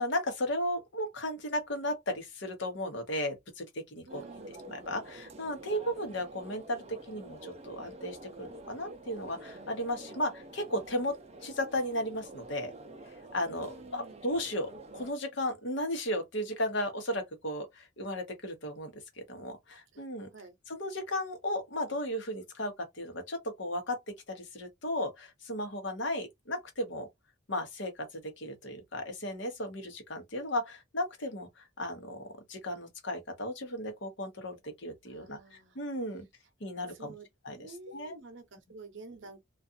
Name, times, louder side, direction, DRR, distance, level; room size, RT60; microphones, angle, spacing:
voice 1, 0.0-3.6 3.9-4.2 4.6-12.7 13.3-18.9 19.3-20.3 20.7-24.0 24.3-27.1 27.5-28.1 28.4-31.5 31.8-32.2 32.5-36.3 36.6-37.1 37.4-38.2, left 1 dB, 65° left, 1.0 m, -35 dB
sound 1, 4.1-15.1, right 2 dB, 30° right, 0.5 m, -48 dB
voice 2, 4.1-4.6 13.5-14.3 19.9-20.0 20.3-20.6 35.1-35.8 36.9-37.2 37.5-39.4, right 3 dB, 60° right, 0.8 m, -49 dB
2.4 x 2.4 x 2.6 m
head